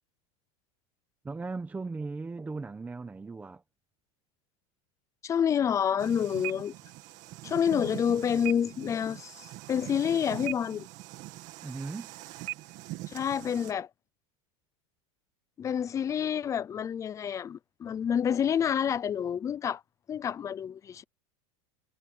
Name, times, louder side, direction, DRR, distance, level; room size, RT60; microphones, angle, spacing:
voice 1, 1.2-3.6 11.6-12.1, right 3 dB, 10° right, 1.1 m, -37 dB
voice 2, 5.2-6.7 7.4-10.9 13.1-13.9 15.6-19.8 20.1-21.0, left 8 dB, 20° left, 0.5 m, -28 dB
sound 1, 6.0-13.7, right 19 dB, 45° right, 2.2 m, -42 dB
supercardioid pair, 155°, 17 cm